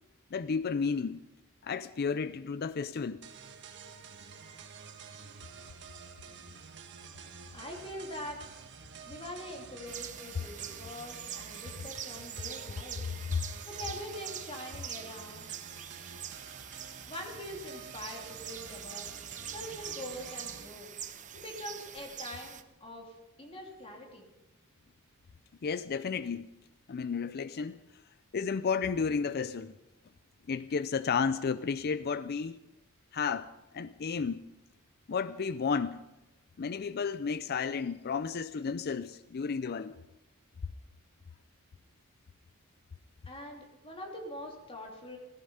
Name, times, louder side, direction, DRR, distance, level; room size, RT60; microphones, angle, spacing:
voice 1, 0.3-1.2 1.6-3.2 13.3-13.4 25.6-26.5 26.9-27.8 28.3-29.7 30.5-32.6 33.1-34.4 35.1-36.0 36.6-40.0, left 5 dB, 45° left, 0.4 m, -32 dB
sound 1, 3.2-20.7, right 5 dB, 55° right, 1.5 m, -49 dB
voice 2, 7.5-8.4 9.1-13.0 13.7-15.5 17.1-19.1 19.5-20.9 21.3-24.3 43.3-45.2, left 1 dB, 25° left, 2.9 m, -43 dB
sound 2, 9.9-22.6, right 9 dB, 35° right, 0.8 m, -44 dB
17.0 x 14.5 x 5.6 m
head